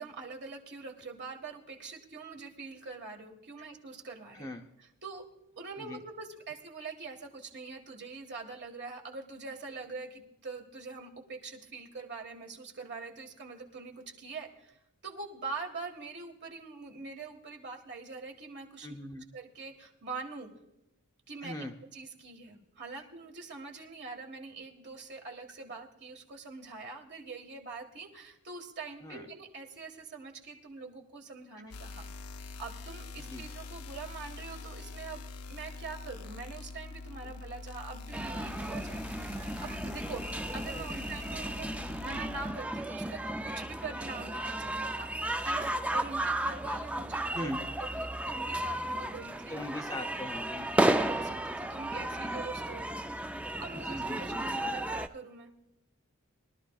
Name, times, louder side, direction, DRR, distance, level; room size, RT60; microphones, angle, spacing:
voice 1, 0.0-4.5 4.8-5.3 5.6-18.9 19.3-20.5 21.3-21.6 21.9-32.1 32.6-35.2 35.5-40.2 40.5-47.5 47.9-49.6 50.1-50.2 50.7-52.9 53.6-55.5, right 4 dB, 50° right, 2 dB, 1.6 m, -44 dB
voice 2, 4.3-4.7 5.8-6.0 18.8-19.2 21.4-21.7 29.0-29.3 33.2-33.4 40.7-41.1 47.3-47.6 49.5-50.8 53.7-54.5, left 1 dB, 15° left, 4 dB, 0.8 m, -40 dB
sound 1, 31.7-42.5, left 3 dB, 80° left, 0.7 m, -44 dB
sound 2, 38.1-55.1, right 1 dB, 5° right, 0.3 m, -34 dB
22.0 x 12.0 x 2.4 m, 0.92 s
head